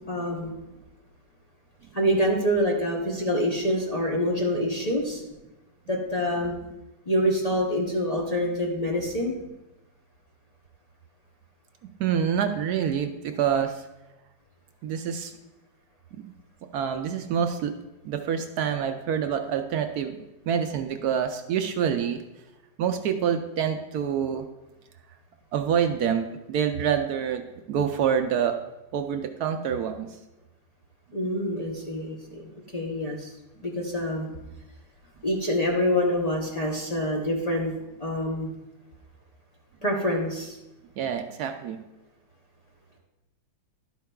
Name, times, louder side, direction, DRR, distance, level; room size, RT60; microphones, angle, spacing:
voice 1, 0.1-0.5 1.9-5.2 5.9-6.6 7.1-9.4 31.1-33.3 33.6-34.3 35.2-37.7 38.0-38.5 39.8-40.6, equal, 90° left, -3 dB, 0.3 m, -26 dB
voice 2, 12.0-13.8 14.8-15.3 16.1-16.2 16.7-17.7 18.0-20.2 20.5-22.2 22.8-24.4 25.5-27.4 27.7-28.6 28.9-30.1 41.0-41.8, right 8 dB, 75° right, 7 dB, 0.9 m, -26 dB
11.5 x 9.3 x 2.3 m, 1.0 s
omnidirectional pair, 2.1 m